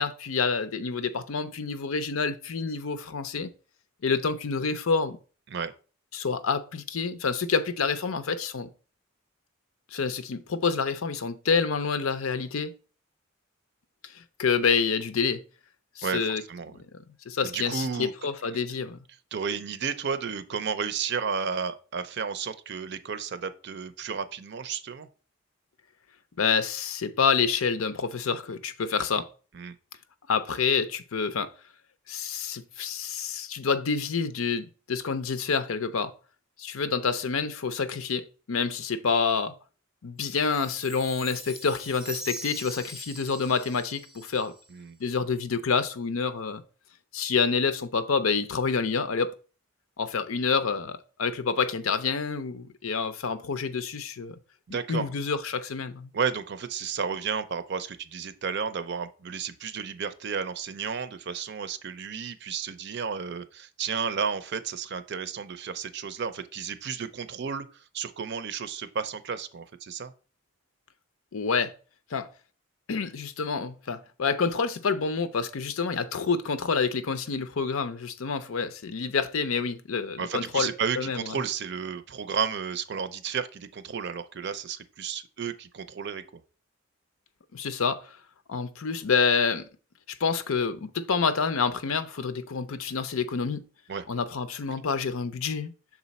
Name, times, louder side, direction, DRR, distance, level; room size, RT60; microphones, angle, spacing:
voice 1, 0.0-3.5 4.0-5.2 6.1-8.7 9.9-12.7 14.1-15.4 16.0-16.4 17.3-19.0 26.4-29.3 30.3-31.5 32.1-36.1 36.6-39.5 40.0-44.5 45.0-46.6 47.1-49.3 50.0-54.4 54.7-56.1 71.3-71.7 72.1-72.3 72.9-80.7 81.0-81.4 87.5-88.1 88.5-89.6 90.2-93.6 94.1-95.7, left 5 dB, 85° left, 0.6 m, -28 dB
voice 2, 16.0-16.7 17.4-18.1 19.3-25.1 29.5-29.7 44.7-45.0 54.7-55.1 56.1-70.1 80.2-86.4 93.9-94.0, right 6 dB, 55° right, 0.5 m, -32 dB
Chime, 40.3-44.8, right 1 dB, ahead, 0.6 m, -42 dB
6.1 x 4.0 x 4.1 m
head